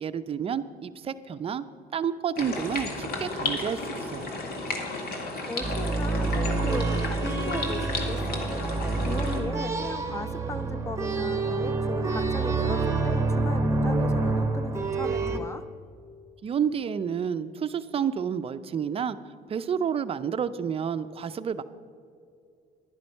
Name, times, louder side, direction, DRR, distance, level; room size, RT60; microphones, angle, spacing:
voice 1, 0.0-1.6 1.9-4.4 16.4-19.2 19.5-21.6, right 7 dB, 35° right, 12 dB, 0.5 m, -30 dB
sound 1, 2.4-9.4, left 2 dB, 65° left, 2.0 m, -33 dB
voice 2, 5.5-8.6 9.1-15.7, left 2 dB, 15° left, 12 dB, 0.7 m, -37 dB
sound 2, 5.6-15.4, right 3 dB, 15° right, 1.0 m, -27 dB
11.0 x 10.5 x 5.4 m, 2.4 s
cardioid pair, 110°, 17 cm